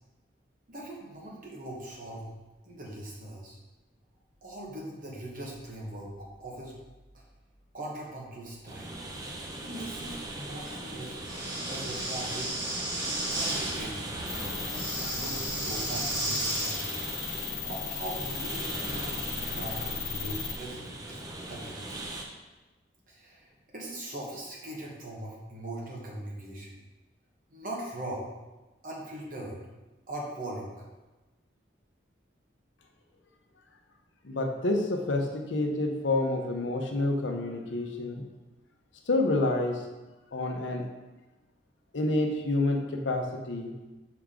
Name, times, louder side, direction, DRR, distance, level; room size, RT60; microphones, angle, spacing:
voice 1, 0.7-2.3 2.6-3.6 4.4-6.7 7.1-7.2 7.7-9.0 9.6-11.1 11.7-12.5 13.3-14.1 14.6-17.0 17.6-21.2 21.5-22.0 23.1-26.8 27.5-28.3 28.8-29.6 30.1-30.9, right 1 dB, 45° right, -4 dB, 1.4 m, -40 dB
sound 1, 8.7-22.2, right 1 dB, 20° right, 0.6 m, -38 dB
Breathing, 11.2-13.7 14.7-16.8, right 1 dB, 80° right, 1.9 m, -33 dB
sound 2, 14.3-20.6, left 9 dB, 55° left, 0.5 m, -37 dB
voice 2, 34.2-38.2 39.1-39.9 40.3-40.9 41.9-43.7, left 2 dB, 85° left, 3 dB, 0.8 m, -28 dB
6.1 x 4.6 x 3.7 m, 1.1 s
head